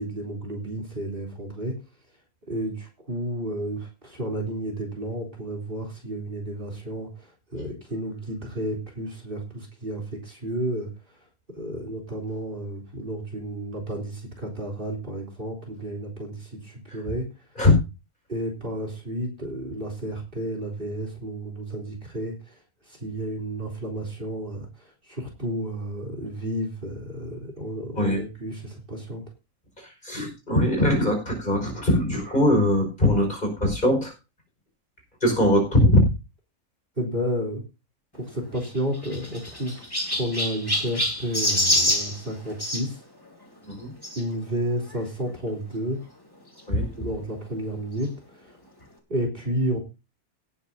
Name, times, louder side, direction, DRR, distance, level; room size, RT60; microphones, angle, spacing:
voice 1, 0.0-1.7 2.5-11.2 11.5-17.3 18.3-22.6 22.8-29.2 37.0-37.6 38.1-39.8 40.1-43.0 44.2-46.0 46.9-48.6 49.1-49.8, right 1 dB, 35° right, 3 dB, 3.8 m, -31 dB
voice 2, 29.8-34.1 35.2-36.1 43.6-43.9 46.7-46.9, left 1 dB, 30° left, 3 dB, 5.4 m, -21 dB
Chirp tweet, 38.5-42.8 44.0-44.2 44.9-45.0 45.2-45.3 46.6-46.7, left 1 dB, 15° left, 2.9 m, -26 dB
18.0 x 10.0 x 2.7 m, 0.28 s
omnidirectional pair, 1.5 m